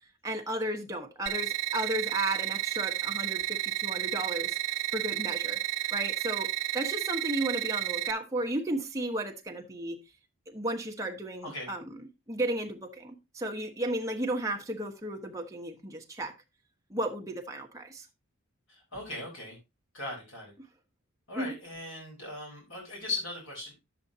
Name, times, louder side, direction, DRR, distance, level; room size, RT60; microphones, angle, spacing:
voice 1, 0.2-5.6 5.9-10.0 10.5-12.0 12.3-16.3 16.9-18.1 21.3-21.6, right 1 dB, 15° right, 1.1 m, -34 dB
sound 1, 1.3-8.1, right 14 dB, 60° right, 0.8 m, -32 dB
voice 2, 18.7-19.6 19.9-20.5 21.3-23.7, left 2 dB, 65° left, 4.1 m, -38 dB
10.5 x 7.7 x 2.7 m
head